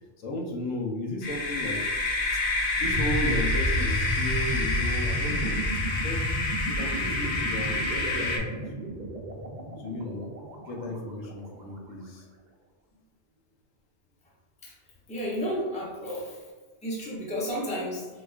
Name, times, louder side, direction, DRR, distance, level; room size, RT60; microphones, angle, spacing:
voice 1, 0.2-2.4 2.8-5.7 6.0-6.3 6.6-8.5 8.7-9.1 9.8-10.3 10.7-12.2, left 1 dB, 90° left, -1 dB, 1.0 m, -35 dB
sound 1, 1.2-8.4, left 2 dB, 55° left, 0.6 m, -29 dB
sound 2, 2.8-11.7, equal, 70° right, 0.4 m, -32 dB
voice 2, 15.1-16.4 16.8-18.1, equal, 10° left, -5 dB, 0.5 m, -32 dB
4.1 x 2.3 x 2.3 m, 1.4 s
omnidirectional pair, 1.3 m